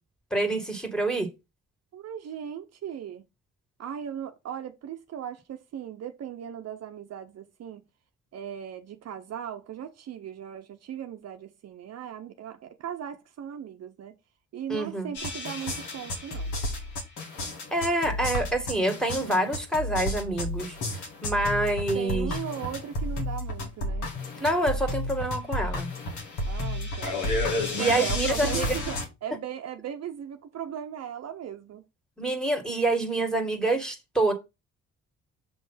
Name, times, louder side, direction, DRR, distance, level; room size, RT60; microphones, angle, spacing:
voice 1, 0.3-1.3 14.7-15.1 17.7-20.8 21.2-22.3 24.4-25.9 27.8-28.7 32.2-34.3, right 1 dB, ahead, 2.0 m, -26 dB
voice 2, 1.9-3.2 3.8-7.8 8.3-14.1 14.5-16.5 21.9-24.1 26.5-27.2 27.8-31.8, right 9 dB, 55° right, 0.8 m, -37 dB
sound 1, 15.1-29.0, left 1 dB, 80° left, 2.2 m, -31 dB
7.1 x 3.2 x 5.6 m
cardioid pair, 90°, 30 cm